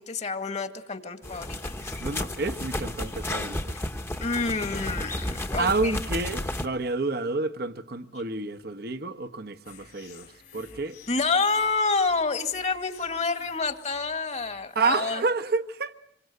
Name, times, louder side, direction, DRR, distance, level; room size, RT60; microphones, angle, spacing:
voice 1, 0.0-2.0 4.2-5.9 11.1-15.2, left 4 dB, 40° left, 2.1 m, -28 dB
sound 1, 1.2-6.7, left 1 dB, 15° left, 1.2 m, -32 dB
voice 2, 2.0-3.8 5.6-11.0 14.7-15.9, right 3 dB, 60° right, 1.1 m, -29 dB
sound 2, 9.6-15.1, left 7 dB, 55° left, 3.3 m, -53 dB
27.0 x 23.0 x 9.4 m
head